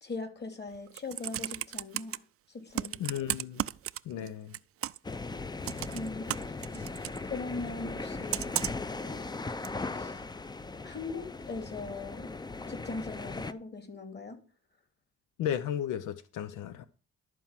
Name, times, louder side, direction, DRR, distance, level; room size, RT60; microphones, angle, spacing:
voice 1, 0.0-2.2 2.5-3.2 4.2-4.3 5.9-6.6 7.2-8.6 9.0-9.2 9.9-10.1 10.8-12.3 12.7-14.4, left 3 dB, 35° left, 2.5 m, -40 dB
Computer keyboard, 0.7-2.2 2.7-4.3 4.5-5.1 5.6-7.2 8.3-8.9 9.6-9.7, right 13 dB, 50° right, 0.4 m, -34 dB
voice 2, 3.0-3.6 4.1-4.5 15.4-16.9, left 10 dB, 90° left, 0.7 m, -34 dB
sound 1, 5.0-13.5, left 3 dB, 15° left, 0.5 m, -38 dB
12.0 x 4.7 x 7.3 m
cardioid pair, 90°, 30 cm